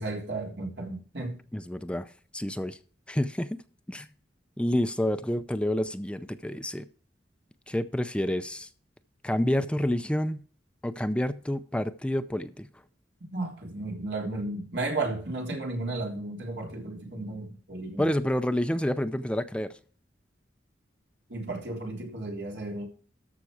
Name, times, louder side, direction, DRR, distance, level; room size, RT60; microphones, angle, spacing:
voice 1, 0.0-1.4 13.2-18.1 21.3-22.8, right 2 dB, 75° right, 3.4 m, -34 dB
voice 2, 1.5-2.8 3.1-3.6 3.9-4.1 4.6-6.9 7.7-8.7 9.2-10.4 10.8-12.7 18.0-19.7, left 1 dB, 5° left, 0.5 m, -28 dB
13.5 x 5.7 x 4.8 m
head